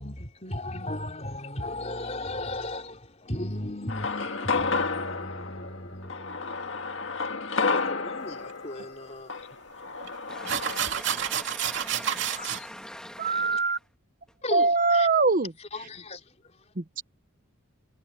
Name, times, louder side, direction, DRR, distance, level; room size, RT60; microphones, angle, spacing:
voice 1, 0.0-7.3 7.6-9.4 9.8-9.9 12.4-12.7 14.4-15.1 15.6-16.6, left 1 dB, 30° left, 4.2 m, -37 dB
sound 1, 3.9-10.8, left 4 dB, 60° left, 1.7 m, -31 dB
sound 2, 8.8-8.9 10.0-10.1 10.5-12.6, right 9 dB, 55° right, 2.7 m, -29 dB
voice 2, 10.3-13.8, left 1 dB, 5° left, 1.6 m, -42 dB
voice 3, 13.2-13.8 14.5-15.5 16.8-17.0, right 3 dB, 40° right, 1.0 m, -23 dB
head